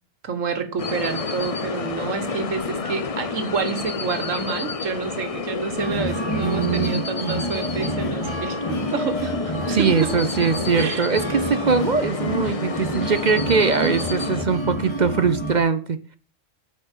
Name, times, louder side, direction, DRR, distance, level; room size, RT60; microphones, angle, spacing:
voice 1, 0.2-10.1 10.7-11.1 13.5-13.9, right 5 dB, 80° right, 1.7 m, -28 dB
sound 1, 0.8-14.5, left 4 dB, 35° left, 0.6 m, -30 dB
sound 2, 5.8-15.6, equal, 20° left, 2.3 m, -29 dB
voice 2, 6.4-7.4 9.7-16.2, right 5 dB, 45° right, 0.7 m, -22 dB
9.8 x 6.2 x 7.4 m
omnidirectional pair, 1.3 m